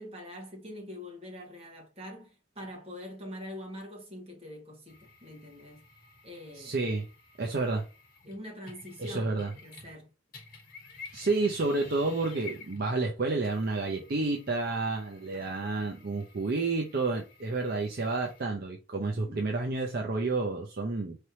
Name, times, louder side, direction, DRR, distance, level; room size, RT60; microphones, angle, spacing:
voice 1, 0.0-5.8 6.2-6.8 8.2-10.1 15.3-15.5 18.9-19.4, left 1 dB, 30° right, 1.8 m, -44 dB
sound 1, 4.9-10.0 10.3-18.4, left 4 dB, 45° left, 1.2 m, -52 dB
voice 2, 6.5-7.1 7.4-7.9 9.0-9.5 11.1-21.2, right 3 dB, 50° right, 0.6 m, -30 dB
4.3 x 3.3 x 2.8 m
head